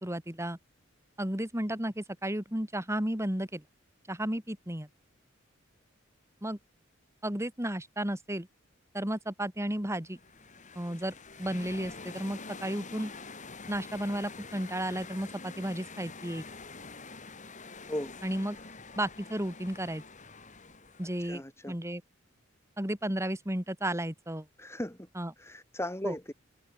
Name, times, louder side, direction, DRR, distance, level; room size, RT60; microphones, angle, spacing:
voice 1, 0.0-0.6 1.2-3.6 4.1-4.9 6.4-6.6 7.2-8.5 8.9-10.2 10.7-13.1 13.7-16.4 18.2-18.6 19.0-20.0 21.0-21.4 21.7-22.0 22.8-24.5 25.2-25.3 26.0-26.1, right 1 dB, 15° right, 3.2 m, -33 dB
sound 1, 10.0-21.4, left 4 dB, 40° left, 5.3 m, -46 dB
voice 2, 21.2-21.8 24.6-25.1 25.4-26.3, left 1 dB, 15° left, 5.9 m, -37 dB
head